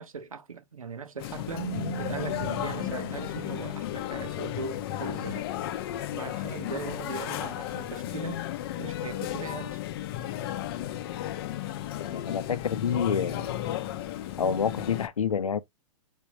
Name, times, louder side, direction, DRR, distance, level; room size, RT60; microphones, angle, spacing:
voice 1, 0.0-1.7 2.0-5.5 6.1-8.4 8.8-9.8, right 5 dB, 85° right, 0.9 m, -39 dB
sound 1, 1.2-15.1, left 13 dB, 45° left, 0.6 m, -34 dB
Keyboard (musical), 1.5-4.3, right 10 dB, 65° right, 0.6 m, -39 dB
voice 2, 12.0-13.5 14.4-15.6, left 7 dB, 80° left, 0.6 m, -28 dB
4.4 x 3.6 x 3.0 m
hypercardioid pair, 115°, 17 cm